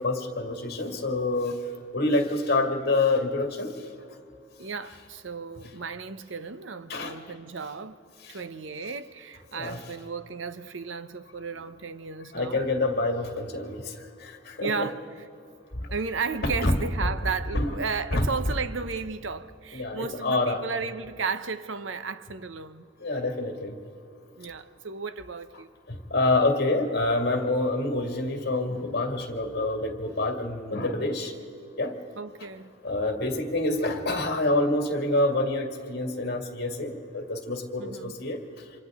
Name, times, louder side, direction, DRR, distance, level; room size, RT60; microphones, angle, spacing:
voice 1, 0.0-1.6 1.9-3.7 6.9-7.2 8.3-8.4 9.5-9.8 12.3-13.9 14.2-14.9 16.6-16.7 17.5-17.8 18.1-18.3 19.7-20.6 23.0-23.7 25.9-31.3 31.8-32.0 32.8-38.4, left 2 dB, 55° left, 2.2 m, -27 dB
voice 2, 4.6-8.0 8.3-12.6 14.6-15.0 15.9-22.8 24.4-25.7 32.2-32.7 37.8-38.2, right 5 dB, 80° right, 0.9 m, -34 dB
29.0 x 26.0 x 3.7 m
head